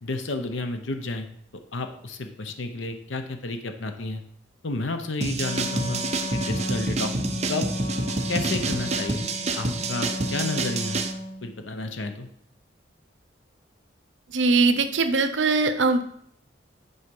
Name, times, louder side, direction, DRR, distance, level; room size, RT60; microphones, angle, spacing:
voice 1, 0.0-1.3 1.7-4.2 4.6-6.0 6.3-7.1 7.5-7.7 8.3-9.3 9.5-11.0 11.4-12.3, left 2 dB, 85° left, 7 dB, 0.9 m, -31 dB
sound 1, 5.2-11.1, right 3 dB, 35° right, 0.7 m, -28 dB
Wind instrument woodwind instrument, 5.4-11.5, left 2 dB, 30° left, 1.4 m, -34 dB
voice 2, 14.3-16.0, right 3 dB, 75° right, 8 dB, 0.7 m, -21 dB
9.7 x 4.3 x 5.4 m, 0.68 s
head